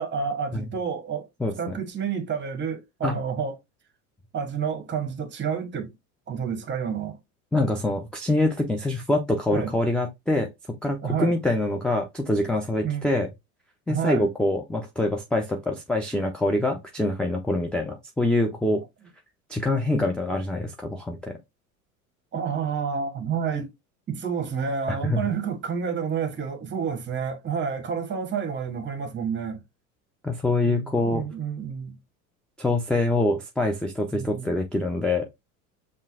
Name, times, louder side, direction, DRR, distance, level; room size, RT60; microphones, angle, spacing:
voice 1, 0.0-1.3 1.6-3.5 4.3-5.9 6.3-7.2 9.5-9.7 11.0-11.4 12.8-13.1 13.9-14.3 22.3-23.7 24.1-29.6 30.6-32.0 34.1-34.5, right 6 dB, 25° right, 1.1 m, -29 dB
voice 2, 7.5-10.5 10.8-13.3 13.9-18.8 19.5-21.3 24.9-25.2 30.2-31.2 32.6-35.3, left 2 dB, ahead, 0.4 m, -25 dB
5.5 x 2.5 x 2.5 m
hypercardioid pair, 80°, 43 cm